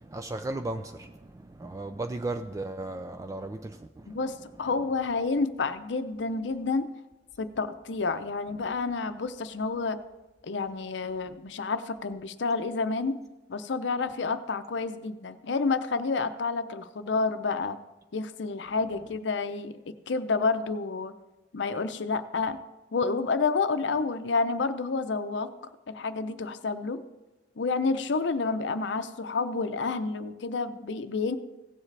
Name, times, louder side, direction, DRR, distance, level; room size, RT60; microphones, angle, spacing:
voice 1, 0.0-4.2, right 2 dB, 20° right, 0.3 m, -36 dB
voice 2, 4.1-7.0 7.4-10.0 10.4-13.2 13.5-17.8 18.1-19.8 20.1-21.1 21.5-22.6 22.9-25.5 25.9-27.0 27.6-31.4, left 4 dB, 75° left, 0.6 m, -29 dB
16.5 x 7.4 x 3.3 m
head